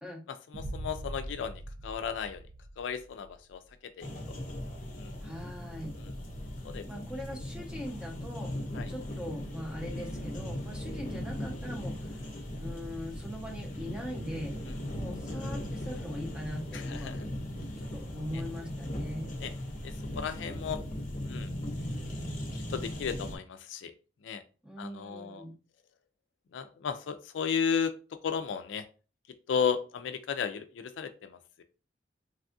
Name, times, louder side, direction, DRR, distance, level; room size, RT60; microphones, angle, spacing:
voice 1, 0.5-2.4 2.8-3.6 4.0-4.1 5.0-5.2 6.0-6.1 6.6-6.8 8.8-8.9 16.7-17.2 19.4-19.5 19.8-20.8 21.3-21.5 22.7-23.9 24.2-24.4 24.8-25.4 26.5-27.9 28.2-28.8 29.5-31.6, left 6 dB, 80° left, 10 dB, 0.4 m, -34 dB
Boom, 0.5-3.5, right 1 dB, 60° right, 0.4 m, -42 dB
sound 1, 4.0-23.4, left 1 dB, 45° left, 0.7 m, -38 dB
voice 2, 5.2-5.9 6.9-8.5 8.9-12.2 12.6-14.5 14.9-17.2 17.8-19.3 24.6-25.5, equal, 5° right, 0 dB, 0.7 m, -41 dB
3.4 x 2.3 x 2.5 m, 0.35 s
head